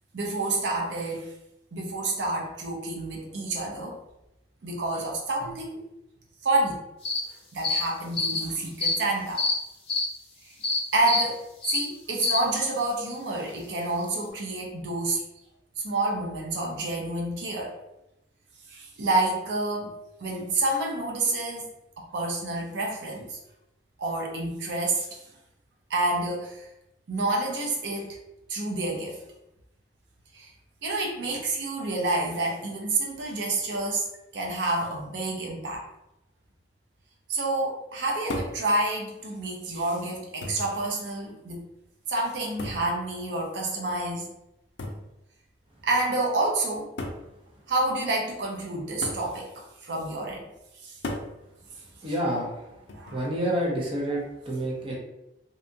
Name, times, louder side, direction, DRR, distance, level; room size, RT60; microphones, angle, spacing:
voice 1, 0.1-1.3 1.7-4.0 4.6-5.9 6.4-6.8 7.5-9.4 10.4-10.6 10.9-11.4 11.7-15.2 15.8-17.8 18.7-21.7 22.0-23.4 24.0-25.2 25.9-26.7 27.1-28.2 28.5-29.2 30.3-30.5 30.8-34.1 34.3-35.8 37.3-41.6 42.1-44.3 45.8-46.9 47.7-50.5 50.8-51.0 52.9-53.3 54.1-54.2, right 2 dB, 80° right, -1 dB, 0.6 m, -28 dB
sound 1, 7.0-7.2 7.6-7.8 8.1-8.4 8.8-8.9 9.4-9.5 9.9-10.0 10.6-10.8 11.1-11.2 11.6-11.8 12.2-12.4, left 3 dB, 30° left, 0.7 m, -25 dB
sound 2, 38.3-38.7 39.7-39.8 40.4-40.8 42.6-42.9 44.8-45.1 46.1-46.2 47.0-47.3 49.0-49.3 51.0-51.3 52.9-53.3, left 2 dB, 75° left, 0.4 m, -34 dB
voice 2, 52.0-52.5 53.1-55.0, right 1 dB, 30° right, -4 dB, 0.5 m, -28 dB
2.7 x 2.3 x 2.6 m, 0.90 s
head